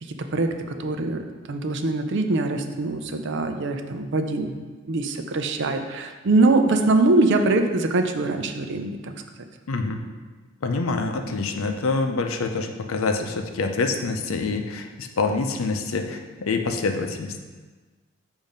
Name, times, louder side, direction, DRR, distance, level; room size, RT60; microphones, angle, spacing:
voice 1, 0.0-4.6 4.9-9.1, right 2 dB, 60° right, 6 dB, 0.5 m, -23 dB
voice 2, 9.7-10.0 10.6-17.3, left 3 dB, 90° left, 6 dB, 0.6 m, -26 dB
7.2 x 2.7 x 5.1 m, 1.4 s
head